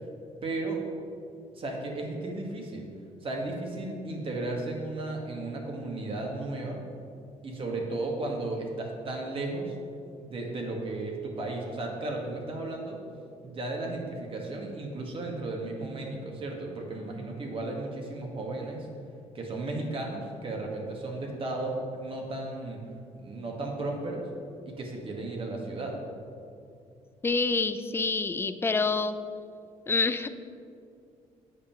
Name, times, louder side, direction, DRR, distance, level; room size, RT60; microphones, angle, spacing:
voice 1, 0.4-0.8 1.5-2.9 3.2-6.8 7.4-9.7 10.2-13.0 13.4-18.9 19.3-22.8 23.1-24.2 24.6-26.0, right 2 dB, 45° right, 0 dB, 1.7 m, -34 dB
voice 2, 27.2-29.1 29.9-30.3, left 4 dB, 20° left, 11 dB, 0.4 m, -27 dB
8.4 x 5.4 x 5.8 m, 2.4 s
cardioid pair, 105°, 13 cm